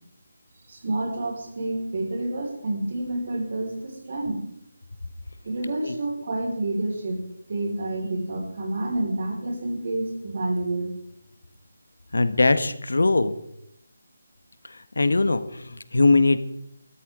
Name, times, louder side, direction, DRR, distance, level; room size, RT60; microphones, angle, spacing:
voice 1, 0.7-4.4 5.4-7.2 7.5-10.9, right 2 dB, 45° right, 1 dB, 4.9 m, -29 dB
voice 2, 12.1-13.3 15.0-16.4, left 3 dB, 85° left, 12 dB, 1.4 m, -21 dB
20.0 x 13.5 x 3.8 m, 0.77 s
figure-of-eight pair, 175°, 0 cm